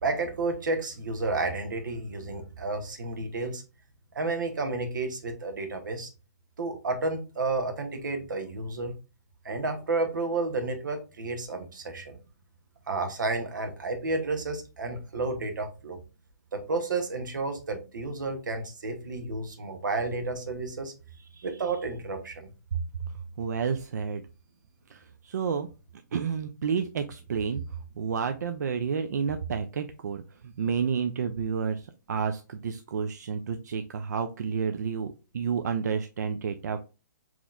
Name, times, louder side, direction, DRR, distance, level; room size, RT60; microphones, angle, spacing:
voice 1, 0.0-3.6 4.1-6.1 6.6-8.9 9.4-12.2 12.9-16.0 16.5-20.9 21.3-22.5, right 3 dB, 90° right, 7 dB, 0.9 m, -31 dB
voice 2, 23.4-24.2 24.9-25.7 26.1-27.6 28.0-36.8, right 6 dB, 65° right, 7 dB, 0.4 m, -30 dB
3.9 x 3.0 x 2.4 m, 0.32 s
hypercardioid pair, 175°, 10 cm